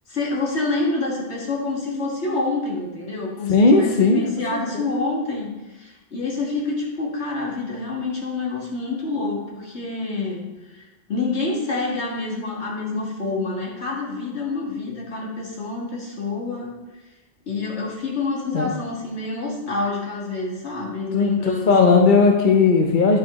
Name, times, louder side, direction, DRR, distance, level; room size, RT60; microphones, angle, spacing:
voice 1, 0.1-10.8 11.1-16.7 17.5-22.1, left 3 dB, 70° left, -3 dB, 2.0 m, -27 dB
voice 2, 3.5-4.2 4.5-4.8 18.5-18.7 21.1-23.2, left 4 dB, 45° left, 3 dB, 0.8 m, -17 dB
9.9 x 4.9 x 4.2 m, 1.1 s
omnidirectional pair, 1.2 m